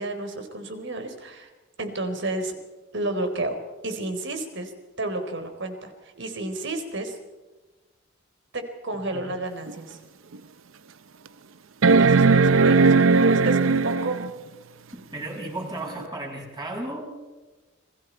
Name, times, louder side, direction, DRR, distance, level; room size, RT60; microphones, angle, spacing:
voice 1, 0.0-1.5 1.8-2.5 2.9-3.6 3.8-4.7 5.0-7.2 8.5-10.0 12.0-12.9 13.2-14.2, right 2 dB, 65° right, 6 dB, 4.0 m, -31 dB
sound 1, 9.7-9.8 10.3-10.4 11.8-14.3 16.0-16.1, right 4 dB, 80° right, 0.7 m, -18 dB
voice 2, 14.9-17.1, right 1 dB, 20° right, 0 dB, 6.4 m, -34 dB
30.0 x 22.0 x 4.6 m, 1.2 s
head